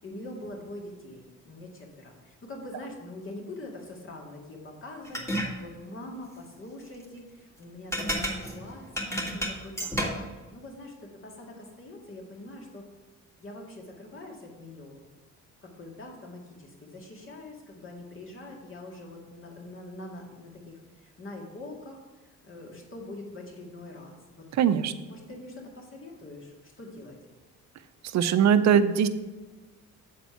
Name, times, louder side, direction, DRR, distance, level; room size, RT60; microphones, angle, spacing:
voice 1, 0.0-12.8 13.4-15.0 15.6-24.5 24.7-27.2, left 2 dB, 45° left, 0 dB, 2.0 m, -44 dB
sound 1, 5.0-5.5 7.9-10.3, equal, 10° left, 1.7 m, -30 dB
voice 2, 24.6-24.9 28.0-29.1, right 8 dB, 65° right, 11 dB, 0.6 m, -21 dB
8.2 x 4.3 x 5.8 m, 1.2 s
cardioid pair, 90°, 30 cm